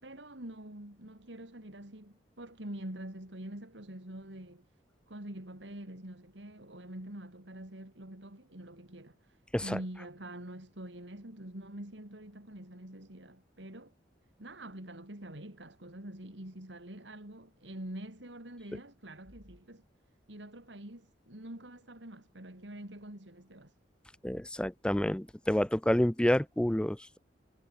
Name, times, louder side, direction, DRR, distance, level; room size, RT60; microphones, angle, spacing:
voice 1, 0.0-4.7 5.1-13.9 14.4-19.8 20.3-23.7, right 1 dB, 80° right, 4.1 m, -45 dB
voice 2, 24.2-27.2, left 1 dB, 5° left, 0.5 m, -29 dB
head